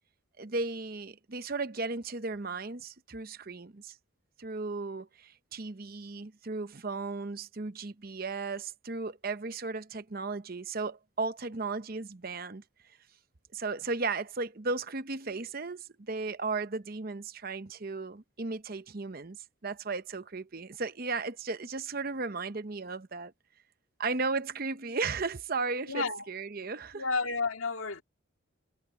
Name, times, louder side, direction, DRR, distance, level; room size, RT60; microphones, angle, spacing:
voice 1, 0.4-4.0 4.4-12.6 13.5-23.3 24.0-27.0, right 3 dB, 45° right, 0.8 m, -35 dB
voice 2, 25.9-26.2 26.9-28.0, left 3 dB, 80° left, 2.0 m, -31 dB
head